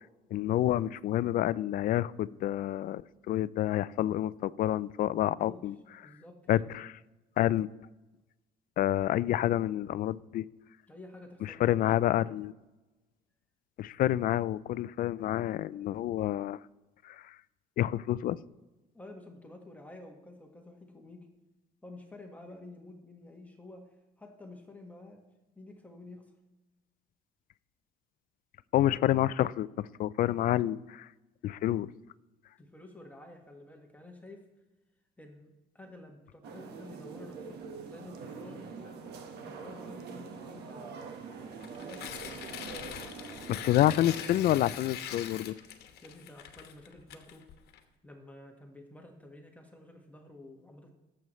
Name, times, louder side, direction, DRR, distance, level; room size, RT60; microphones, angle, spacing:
voice 1, 0.3-3.0 3.3-5.8 6.5-6.9 7.4-7.7 8.8-10.4 11.6-12.5 13.8-16.6 17.0-17.2 17.8-18.4 28.7-31.1 31.4-31.9 43.5-45.6, left 13 dB, 55° left, 0.4 m, -28 dB
voice 2, 5.1-5.6 6.0-6.7 10.9-11.9 18.9-21.3 21.8-25.2 25.5-26.3 32.6-34.5 35.2-39.2 39.5-41.1 41.7-42.1 46.0-47.4 48.0-50.9, left 2 dB, 10° left, 1.5 m, -50 dB
sound 1, 36.4-44.4, right 5 dB, 75° right, 1.3 m, -44 dB
Tearing, 41.5-47.8, left 9 dB, 75° left, 1.1 m, -43 dB
17.5 x 7.8 x 3.1 m
cardioid pair, 110°, 17 cm